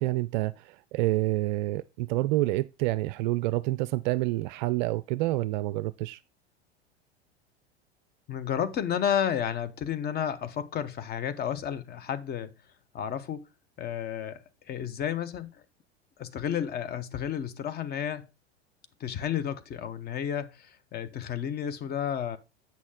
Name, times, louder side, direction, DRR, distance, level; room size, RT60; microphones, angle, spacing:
voice 1, 0.0-6.2, right 17 dB, 45° right, 0.4 m, -28 dB
voice 2, 8.3-12.5 12.9-13.5 13.8-15.6 16.2-18.3 19.0-22.4, left 9 dB, 30° left, 0.9 m, -32 dB
8.5 x 6.2 x 3.8 m
figure-of-eight pair, 85°, 33 cm